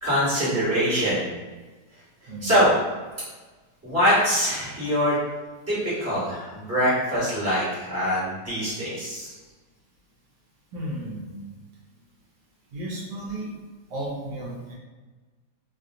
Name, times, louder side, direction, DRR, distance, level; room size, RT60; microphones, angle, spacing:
voice 1, 0.0-1.2 2.4-2.7 3.8-5.2 5.7-9.3, equal, 10° right, -11 dB, 1.2 m, -23 dB
voice 2, 10.7-11.5 12.7-13.5 13.9-14.7, right 1 dB, 80° right, -4 dB, 1.2 m, -34 dB
3.1 x 2.6 x 2.5 m, 1.3 s
omnidirectional pair, 1.9 m